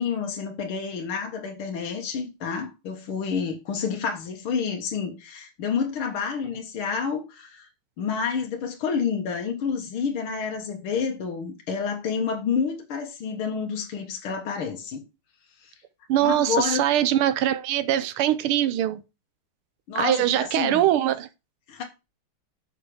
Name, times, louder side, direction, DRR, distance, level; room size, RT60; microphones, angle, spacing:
voice 1, 0.0-7.7 8.0-15.0 15.6-15.7 16.2-16.8 19.9-20.9 21.7-21.8, left 6 dB, 80° left, 2.3 m, -29 dB
voice 2, 16.1-19.0 19.9-21.3, right 12 dB, 90° right, 1.6 m, -22 dB
6.7 x 6.6 x 4.9 m
omnidirectional pair, 2.3 m